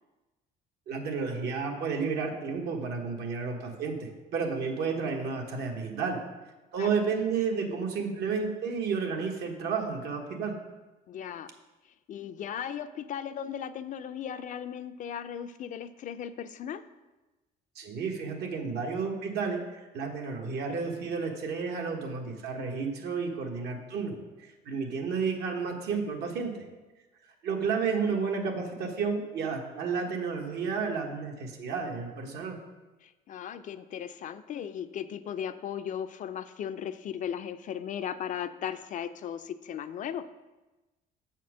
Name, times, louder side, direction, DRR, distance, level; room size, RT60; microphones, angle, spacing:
voice 1, 0.9-6.2 6.7-10.6 17.7-19.6 19.9-26.6 27.4-32.6, right 5 dB, 75° right, 2 dB, 1.3 m, -31 dB
voice 2, 11.1-11.5 12.1-16.8 33.0-40.3, left 9 dB, 50° left, 12 dB, 0.4 m, -37 dB
7.2 x 4.4 x 6.1 m, 1.1 s
cardioid pair, 110°, 17 cm